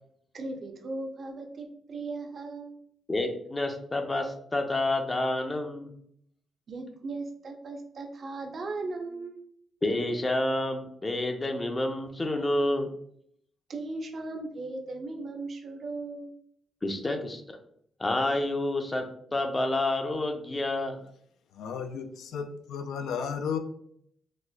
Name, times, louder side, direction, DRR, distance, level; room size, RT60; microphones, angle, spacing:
voice 1, 0.3-2.8 6.7-9.4 13.7-16.3, right 3 dB, 50° right, 3 dB, 0.6 m, -37 dB
voice 2, 3.1-5.9 9.8-12.9 16.8-17.6 18.0-21.0, left 2 dB, 25° left, 5 dB, 0.5 m, -29 dB
voice 3, 21.5-23.6, left 6 dB, 85° left, 6 dB, 0.3 m, -33 dB
4.1 x 2.4 x 2.2 m, 0.67 s
cardioid pair, 100°, 0 cm